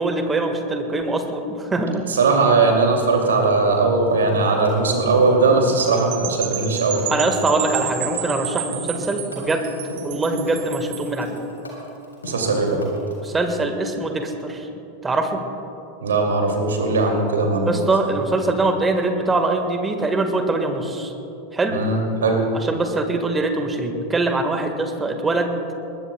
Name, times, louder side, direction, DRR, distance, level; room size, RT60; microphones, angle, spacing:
voice 1, 0.0-2.0 7.1-9.7 10.0-11.4 13.2-14.7 15.0-15.4 17.7-21.1 21.5-21.8 22.5-25.5, right 2 dB, 15° right, 6 dB, 1.4 m, -23 dB
voice 2, 2.1-7.1 12.2-12.8 16.0-17.8 21.7-22.4, right 3 dB, 70° right, 2 dB, 2.3 m, -19 dB
sound 1, 4.1-13.3, left 2 dB, 80° left, 3.7 m, -36 dB
sound 2, 5.9-11.2, right 11 dB, 55° right, 1.5 m, -31 dB
21.0 x 20.5 x 2.2 m, 2.9 s
figure-of-eight pair, 85°, 0 cm